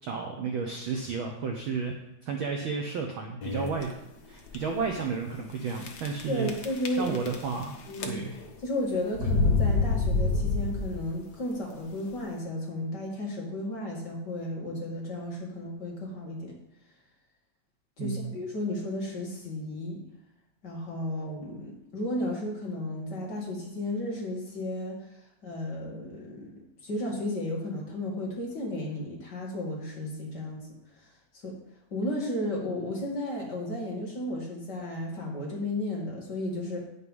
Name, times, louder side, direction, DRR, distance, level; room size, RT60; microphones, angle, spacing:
voice 1, 0.0-1.9 2.2-3.9 4.3-6.5 7.0-7.8 8.0-8.4 18.0-18.3, right 5 dB, 65° right, 2 dB, 1.3 m, -32 dB
sound 1, 3.4-3.8 4.5-4.6 4.8-4.9 5.8-6.2 6.5-7.6 7.9-8.5 9.2-11.1, left 3 dB, 55° left, 1.1 m, -26 dB
voice 2, 6.3-7.2 7.9-8.2 8.6-16.5 18.0-20.0 20.6-25.2 25.4-26.5 26.8-30.7 31.0-31.1 31.4-31.6 31.9-36.8, left 1 dB, 40° left, -2 dB, 2.3 m, -33 dB
10.0 x 6.5 x 5.4 m, 0.90 s
omnidirectional pair, 3.3 m